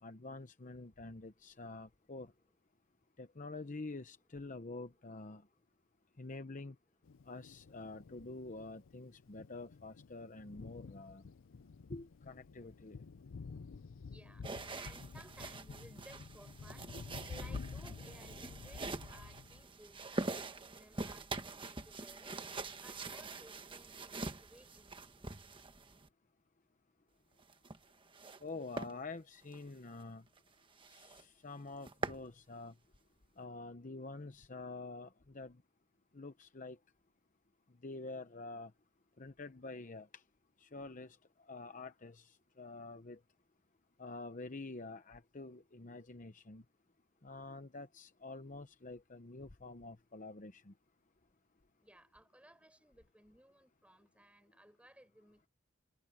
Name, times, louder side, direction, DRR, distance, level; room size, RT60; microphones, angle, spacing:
voice 1, 0.0-2.3 3.2-5.5 6.2-6.8 7.2-11.3 11.9-13.0 28.4-30.2 30.9-32.7 33.4-35.6 36.1-36.8 37.8-38.7 39.2-40.2 40.6-43.2 44.0-46.6 47.2-50.7, left 3 dB, 40° left, 0.9 m, -47 dB
Thunder, 7.0-19.6, left 4 dB, 75° left, 0.5 m, -50 dB
voice 2, 14.1-14.5 14.7-22.4 22.7-24.9 51.8-55.5, right 1 dB, 5° right, 6.8 m, -60 dB
sound 1, 14.4-26.1 27.4-28.4 28.7-28.9 29.4-29.6 30.0-30.1 30.4-30.5 30.8-31.2 31.6-32.3, right 3 dB, 25° right, 1.3 m, -44 dB
head